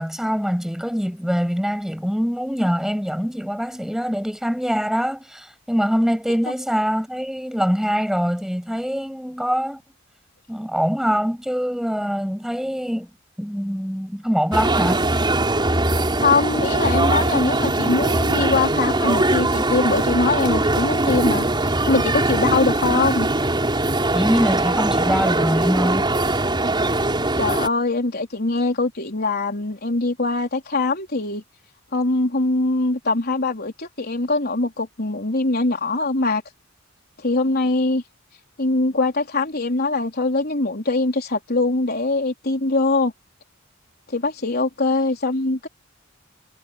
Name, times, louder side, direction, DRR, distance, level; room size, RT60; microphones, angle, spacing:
voice 1, 0.0-9.8 10.5-13.1 13.4-15.0 24.1-26.1, equal, ahead, 6.9 m, -23 dB
sound 1, 14.5-27.7, right 2 dB, 25° right, 5.4 m, -21 dB
voice 2, 16.2-23.3 27.4-31.4 31.9-36.4 37.2-38.0 38.6-43.1 44.1-45.7, left 3 dB, 50° left, 4.2 m, -22 dB
head